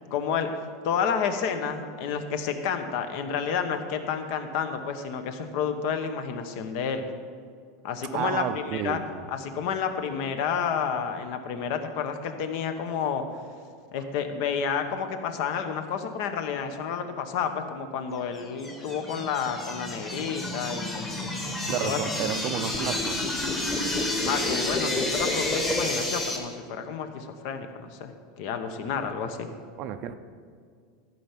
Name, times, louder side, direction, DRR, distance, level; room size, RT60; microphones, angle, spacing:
voice 1, 0.1-0.5 0.8-7.1 7.8-9.0 9.3-13.2 13.9-21.3 21.8-22.0 24.2-28.1 28.4-29.5, left 7 dB, 50° left, 8 dB, 1.0 m, -30 dB
voice 2, 8.1-9.3 21.7-23.2 24.6-24.7 28.8-28.9 29.2-29.3 29.8-30.1, right 9 dB, 35° right, 10 dB, 0.6 m, -31 dB
sound 1, 18.4-26.4, left 1 dB, 10° left, 1.3 m, -29 dB
14.0 x 5.7 x 7.4 m, 2.1 s
supercardioid pair, 170°, 2 cm